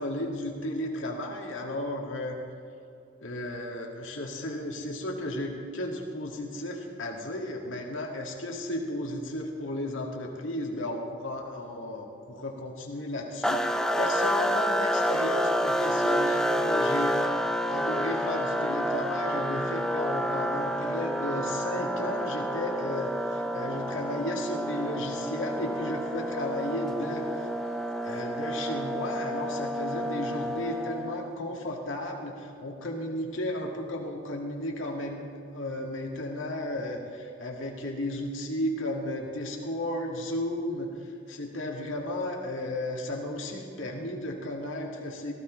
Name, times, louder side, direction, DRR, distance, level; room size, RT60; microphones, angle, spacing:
voice 1, 0.0-2.4 3.2-17.2 17.7-27.5 28.0-45.3, left 1 dB, 90° left, 0 dB, 2.0 m, -34 dB
sound 1, 13.4-31.3, equal, 5° left, 0.4 m, -29 dB
17.5 x 15.0 x 3.2 m, 2.5 s
head